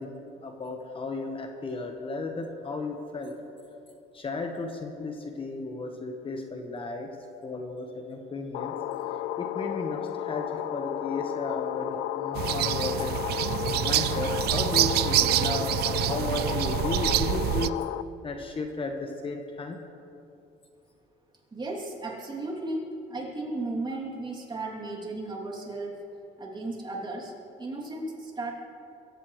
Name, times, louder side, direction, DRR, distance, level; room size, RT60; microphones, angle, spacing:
voice 1, 0.0-3.3 4.1-7.1 7.4-8.7 9.1-13.1 13.6-17.8 18.2-19.8, left 3 dB, 30° left, 3 dB, 1.4 m, -34 dB
sound 1, 8.5-18.0, left 12 dB, 85° left, 0.4 m, -32 dB
sound 2, 12.4-17.7, right 14 dB, 70° right, 0.5 m, -26 dB
voice 2, 21.5-26.0 26.4-27.3 27.6-28.5, right 2 dB, 25° right, -2 dB, 3.1 m, -35 dB
24.0 x 15.0 x 3.3 m, 2.8 s
cardioid pair, 110°, 17 cm